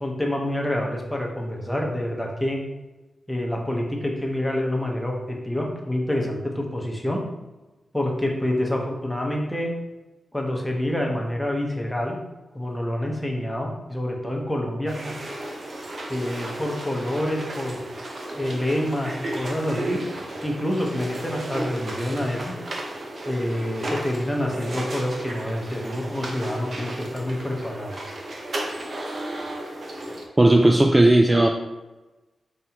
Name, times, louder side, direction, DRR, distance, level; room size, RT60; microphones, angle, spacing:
voice 1, 0.0-2.6 3.3-7.2 7.9-9.7 10.3-12.2 12.5-15.1 16.1-17.8 18.3-20.0 20.4-22.5 23.3-28.0, left 1 dB, 10° left, 0 dB, 0.9 m, -27 dB
sound 1, 14.9-30.3, right 1 dB, 55° right, 0.7 m, -34 dB
voice 2, 30.4-31.5, right 1 dB, 20° right, 3 dB, 0.3 m, -15 dB
5.5 x 3.0 x 2.9 m, 1.1 s
cardioid pair, 75°, 0 cm